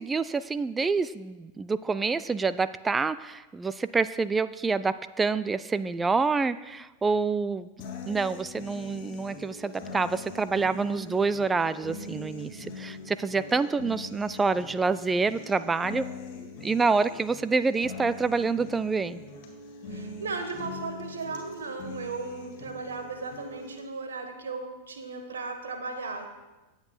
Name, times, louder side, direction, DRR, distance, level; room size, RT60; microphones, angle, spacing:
voice 1, 0.0-7.7 8.1-16.1 16.6-19.2, right 4 dB, 15° right, 14 dB, 0.3 m, -27 dB
sound 1, 7.8-23.8, left 3 dB, 45° left, 2.3 m, -42 dB
voice 2, 19.9-26.3, right 4 dB, 65° right, 6 dB, 1.3 m, -36 dB
18.5 x 8.0 x 2.3 m, 1.1 s
figure-of-eight pair, 90°, 0 cm